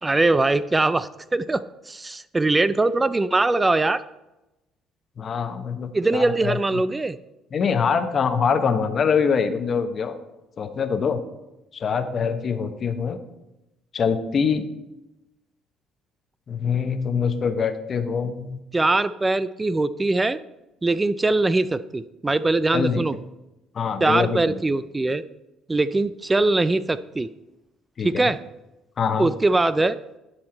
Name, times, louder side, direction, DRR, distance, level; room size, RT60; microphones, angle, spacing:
voice 1, 0.0-4.0 5.9-7.2 18.7-20.4 20.8-23.1 24.0-25.2 25.7-27.3 28.0-28.4 29.2-30.0, right 2 dB, 20° right, 15 dB, 0.3 m, -22 dB
voice 2, 5.2-6.6 7.5-10.1 10.6-11.2 11.7-13.2 13.9-14.6 16.5-18.6 22.7-23.0 23.7-24.6 28.0-28.3 29.0-29.3, left 6 dB, 45° left, 9 dB, 0.8 m, -24 dB
11.0 x 4.4 x 4.3 m, 0.96 s
supercardioid pair, 75°, 0 cm